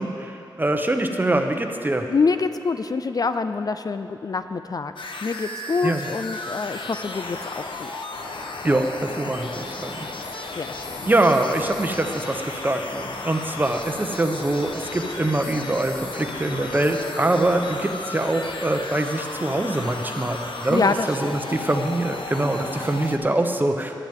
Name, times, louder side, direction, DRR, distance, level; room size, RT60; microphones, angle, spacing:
voice 1, 0.0-2.1 5.8-6.1 8.6-10.1 10.3-10.5 11.1-23.9, right 1 dB, 20° right, 5 dB, 0.9 m, -24 dB
voice 2, 2.1-4.9 5.2-7.9 10.6-11.1 20.7-21.4, left 4 dB, 45° left, 10 dB, 0.4 m, -26 dB
sound 1, 5.0-23.2, left 3 dB, 70° left, 0.9 m, -34 dB
15.0 x 11.0 x 3.6 m, 2.7 s
wide cardioid pair, 75°, 9 cm